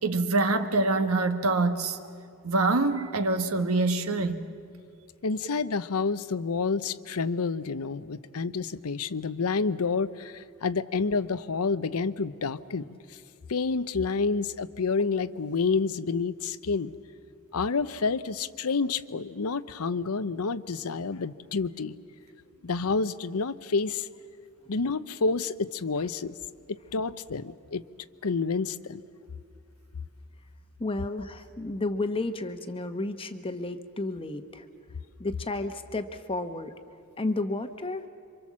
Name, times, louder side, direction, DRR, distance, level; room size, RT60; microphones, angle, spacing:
voice 1, 0.0-2.0 2.4-4.5, right 3 dB, 75° right, 1.3 m, -25 dB
voice 2, 5.2-13.0 13.5-16.9 17.5-21.9 22.6-24.1 24.7-26.4 26.7-27.8 28.2-29.0, left 4 dB, 85° left, 0.7 m, -29 dB
voice 3, 30.8-34.7 35.2-36.7 37.2-38.1, left 2 dB, 25° left, 1.0 m, -32 dB
27.5 x 25.0 x 7.4 m
head